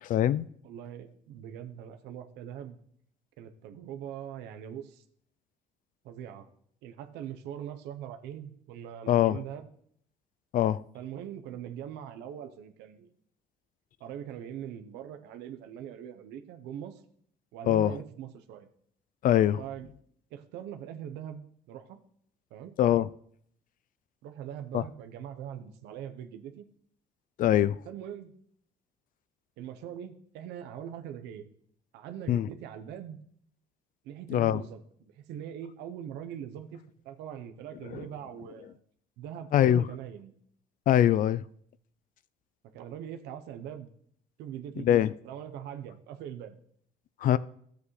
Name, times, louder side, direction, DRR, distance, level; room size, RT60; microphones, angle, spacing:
voice 1, 0.0-0.4 9.1-9.4 10.5-10.8 17.7-17.9 19.2-19.6 22.8-23.1 24.7-24.8 27.4-27.8 32.3-32.5 34.3-34.6 37.9-38.0 39.5-39.9 40.9-41.4 44.8-45.1 47.2-47.4, left 11 dB, 55° left, 0.4 m, -23 dB
voice 2, 0.6-2.8 3.4-5.0 6.0-6.5 6.8-9.7 10.9-13.1 14.0-17.0 17.5-18.7 19.6-19.9 20.3-22.0 22.5-22.7 24.2-26.7 27.9-28.3 29.6-31.5 31.9-33.2 34.0-36.8 37.0-38.8 39.2-40.3 42.7-43.9 44.4-44.9 45.2-46.6, right 9 dB, 90° right, 0.9 m, -42 dB
13.0 x 8.2 x 3.2 m
cardioid pair, 110°, 17 cm